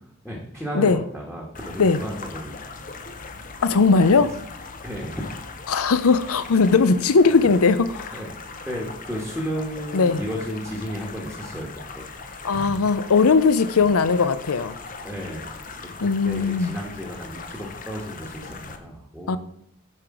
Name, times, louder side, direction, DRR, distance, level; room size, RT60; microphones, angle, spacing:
voice 1, 0.2-2.9 4.8-5.3 7.3-7.5 8.1-8.3 8.6-11.7 11.9-12.8 13.8-13.9 15.0-15.6 16.0-19.4, equal, ahead, 1.4 m, -33 dB
sound 1, 1.5-18.8, left 4 dB, 40° left, 0.7 m, -39 dB
voice 2, 3.6-4.3 5.7-8.1 9.9-10.2 12.4-14.8 16.0-16.7 19.3-19.4, left 4 dB, 90° left, 0.6 m, -19 dB
9.9 x 4.9 x 4.9 m
head